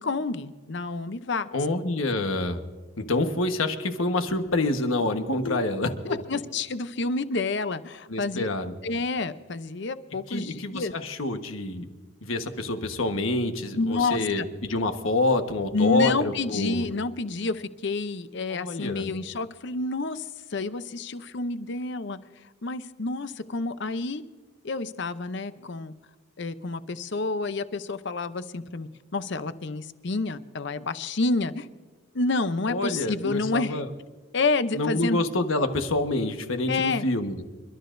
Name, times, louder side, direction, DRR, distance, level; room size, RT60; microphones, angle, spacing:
voice 1, 0.0-1.5 5.4-5.6 6.1-8.4 8.8-10.9 13.7-14.5 15.7-22.2 22.6-24.2 24.6-25.9 26.4-31.7 32.1-33.8 34.3-35.2 36.7-37.0, left 3 dB, 55° left, 13 dB, 0.6 m, -29 dB
voice 2, 1.5-2.6 3.0-6.2 8.1-8.7 10.3-11.9 12.2-16.8 18.5-19.1 32.7-33.9 34.7-37.4, left 2 dB, 75° left, 7 dB, 1.3 m, -27 dB
28.5 x 12.5 x 2.6 m, 1.3 s
head